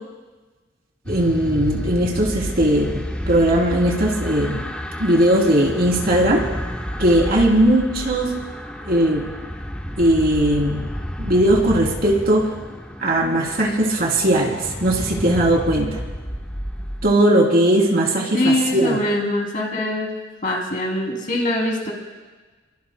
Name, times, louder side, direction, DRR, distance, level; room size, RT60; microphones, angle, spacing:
sound 1, 1.1-17.1, equal, 5° left, 0.9 m, -30 dB
voice 1, 1.1-4.6 5.0-6.4 7.0-8.3 8.8-9.2 10.0-10.8 11.2-12.5 13.0-16.0 17.0-19.0, right 1 dB, 50° right, -1 dB, 3.2 m, -18 dB
voice 2, 18.3-20.1 20.4-21.9, left 1 dB, 45° left, 0 dB, 2.9 m, -22 dB
27.0 x 23.5 x 2.2 m, 1.3 s
head